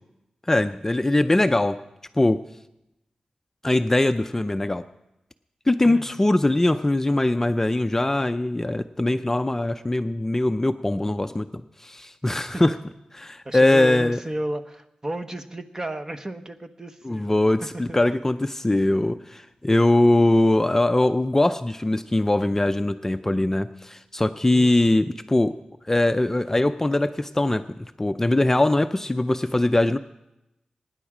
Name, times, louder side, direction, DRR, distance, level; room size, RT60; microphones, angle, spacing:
voice 1, 0.5-1.8 2.2-2.4 3.6-4.8 5.7-12.8 13.1-14.2 17.0-25.5 25.9-30.0, left 1 dB, 20° left, 9 dB, 0.4 m, -21 dB
voice 2, 5.8-6.2 13.4-17.3 17.6-18.0 24.5-24.9, right 1 dB, 25° right, 8 dB, 1.0 m, -33 dB
23.5 x 10.0 x 4.9 m, 0.90 s
wide cardioid pair, 90°, 2 cm